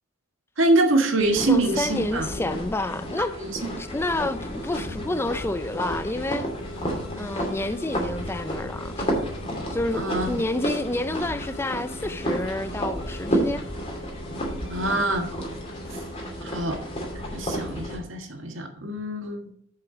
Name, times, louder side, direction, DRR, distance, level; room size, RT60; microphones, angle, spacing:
voice 1, 0.6-2.3 3.2-3.7 10.0-10.4 14.7-15.3 15.9-16.0 16.4-16.8 17.3-19.5, right 2 dB, 75° right, 1.7 m, -25 dB
sound 1, 1.2-18.0, equal, 30° left, 2.6 m, -31 dB
voice 2, 1.5-3.3 3.8-6.5 7.2-9.1 9.7-13.6, left 2 dB, 10° left, 0.3 m, -29 dB
sound 2, 3.4-17.8, left 2 dB, 65° left, 1.9 m, -45 dB
7.2 x 6.6 x 5.9 m
head